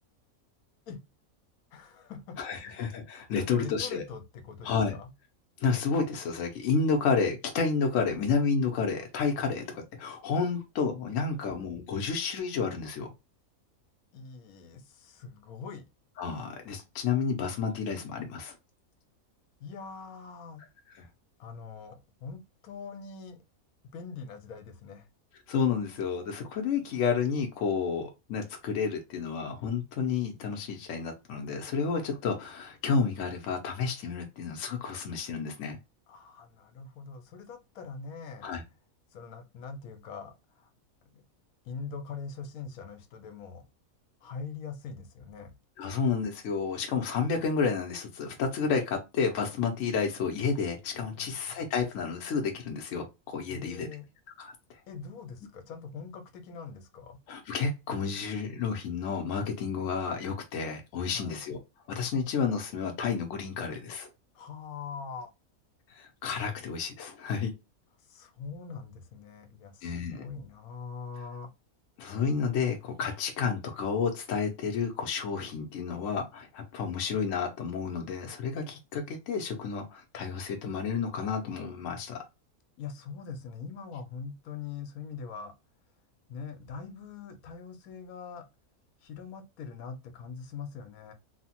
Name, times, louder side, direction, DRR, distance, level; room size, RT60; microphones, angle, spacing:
voice 1, 1.7-2.8 3.3-5.1 11.3-11.5 14.1-15.8 19.6-20.6 21.4-23.4 23.9-25.1 36.1-38.5 39.1-40.7 41.1-41.2 41.6-43.7 44.2-45.5 51.1-51.5 53.5-54.1 54.9-57.2 61.1-61.4 64.3-65.3 68.1-71.5 82.8-85.5 86.3-88.5 89.0-91.1, left 5 dB, 85° left, 1.1 m, -43 dB
voice 2, 2.4-4.0 4.6-5.0 5.6-13.1 16.2-18.5 21.0-21.1 25.5-35.8 38.4-38.6 45.8-53.9 54.4-54.5 57.3-61.6 61.9-64.1 65.9-67.5 69.8-70.2 72.0-82.2, left 5 dB, 65° left, 1.0 m, -30 dB
3.2 x 2.0 x 2.8 m
omnidirectional pair, 1.5 m